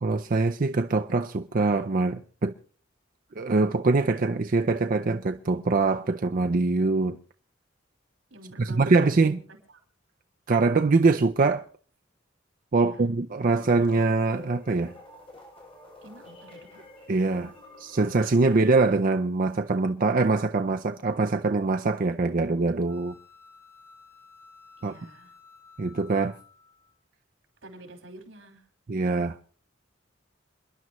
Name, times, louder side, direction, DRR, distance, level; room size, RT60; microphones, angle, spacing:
voice 1, 0.0-2.5 3.4-7.2 8.6-9.4 10.5-11.6 12.7-14.9 17.1-23.1 24.8-24.9 25.8-26.3 28.9-29.4, right 3 dB, 45° right, 0.5 m, -23 dB
voice 2, 8.3-9.4 9.7-9.8 12.7-13.0 16.0-16.8 24.8-25.3 27.6-28.7, right 1 dB, 85° right, 4.5 m, -47 dB
sound 1, 13.6-18.9, left 2 dB, 30° left, 7.0 m, -49 dB
sound 2, 22.9-26.9, left 5 dB, 10° left, 1.7 m, -54 dB
28.5 x 11.0 x 3.1 m
head